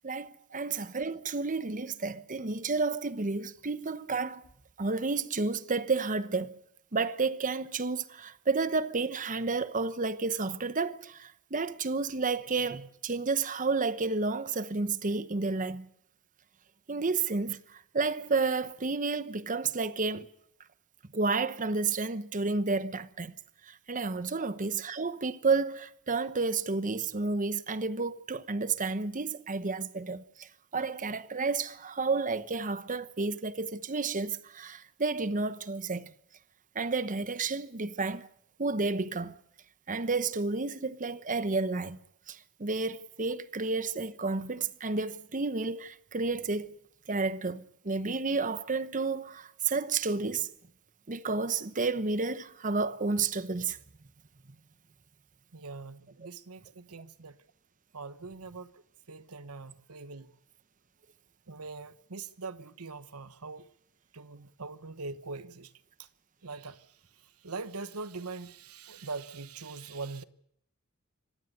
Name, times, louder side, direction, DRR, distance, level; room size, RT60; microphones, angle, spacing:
voice 1, 0.0-4.4 4.8-6.6 6.9-15.9 16.9-20.3 21.1-23.3 23.6-36.1 36.7-38.3 38.6-39.4 39.9-42.0 42.3-46.8 47.1-50.5 51.1-53.8, right 4 dB, 35° right, 1.0 m, -31 dB
voice 2, 55.5-57.4 57.9-58.8 59.1-60.3 61.5-63.7 64.1-65.7 66.0-66.1 66.4-70.2, right 4 dB, 90° right, 1.2 m, -42 dB
25.5 x 17.5 x 6.7 m
head